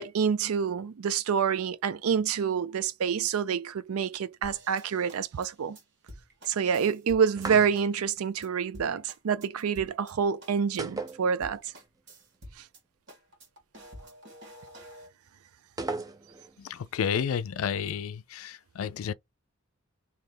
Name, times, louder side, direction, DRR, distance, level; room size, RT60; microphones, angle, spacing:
voice 1, 0.0-5.8 6.5-11.6, right 7 dB, 85° right, 0.4 m, -27 dB
sound 1, 4.4-7.5 7.7-8.1 8.4-8.5 8.7-10.1 10.4-10.8 11.1-11.2 11.4-12.8 13.1-15.1, equal, 55° right, 1.6 m, -49 dB
sound 2, 7.4-8.1 10.8-11.8 12.1-12.2 15.8-16.6, right 3 dB, 15° right, 0.4 m, -36 dB
voice 2, 16.6-19.1, left 7 dB, 75° left, 0.4 m, -31 dB
3.4 x 2.8 x 3.8 m
head